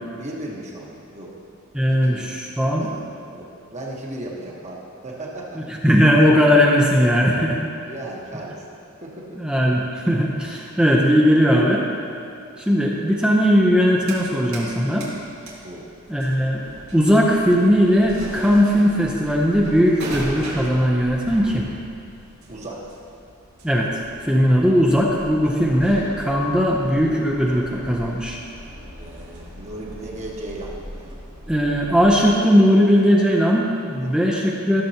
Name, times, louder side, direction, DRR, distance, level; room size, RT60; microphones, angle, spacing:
voice 1, 0.1-1.3 1.9-2.3 2.8-5.6 7.8-8.6 9.0-9.4 15.6-15.9 22.5-22.8 29.0-30.7 34.0-34.1, right 1 dB, 30° right, -2 dB, 1.2 m, -36 dB
voice 2, 1.7-2.9 5.7-7.7 9.4-11.8 12.6-15.1 16.1-16.6 16.9-21.7 23.6-23.9 24.2-28.4 31.5-34.8, equal, 5° right, -2 dB, 0.6 m, -18 dB
sound 1, 13.7-14.7 15.0-32.4, right 1 dB, 75° right, 2.1 m, -39 dB
14.0 x 6.7 x 2.9 m, 2.6 s
head